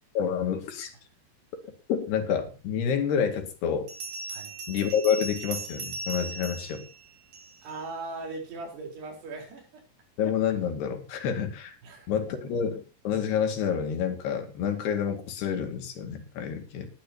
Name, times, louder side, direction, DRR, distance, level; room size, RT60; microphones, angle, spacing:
voice 1, 0.2-0.9 1.9-3.9 4.7-6.8 10.2-11.8 12.1-16.9, left 7 dB, 75° left, 5 dB, 4.2 m, -28 dB
Bell, 2.7-2.8 3.9-7.8, right 3 dB, 60° right, 5.4 m, -38 dB
voice 2, 7.6-9.8 11.8-12.5, right 3 dB, 75° right, 2 dB, 6.1 m, -39 dB
20.5 x 11.5 x 2.9 m, 0.33 s
omnidirectional pair, 4.8 m